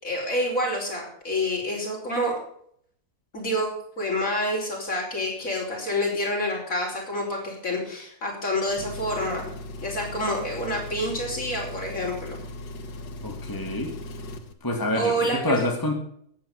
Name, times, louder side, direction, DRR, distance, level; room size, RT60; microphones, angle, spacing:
voice 1, 0.0-2.3 3.3-3.7 4.0-9.5 9.8-12.4 15.0-15.7, equal, 55° left, -1 dB, 5.6 m, -28 dB
Engine, 8.7-14.5, left 1 dB, 85° left, 1.9 m, -38 dB
voice 2, 13.2-13.9 14.6-15.9, left 2 dB, 15° left, 2 dB, 1.9 m, -27 dB
12.0 x 9.5 x 7.0 m, 0.65 s
omnidirectional pair, 1.7 m